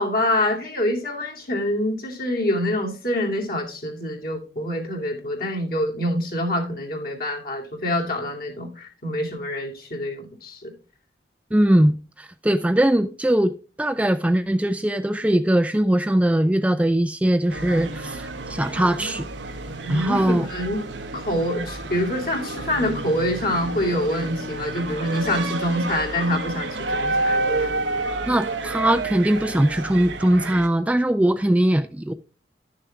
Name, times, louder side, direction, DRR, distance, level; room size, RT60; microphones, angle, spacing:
voice 1, 0.0-10.7 19.8-20.8 21.1-27.8, left 1 dB, 55° left, 2.5 m, -26 dB
voice 2, 11.5-19.3 19.9-20.5 28.3-32.1, right 1 dB, 10° right, 0.4 m, -21 dB
sound 1, 17.5-30.7, right 2 dB, 85° right, 1.1 m, -30 dB
11.5 x 6.7 x 3.6 m
head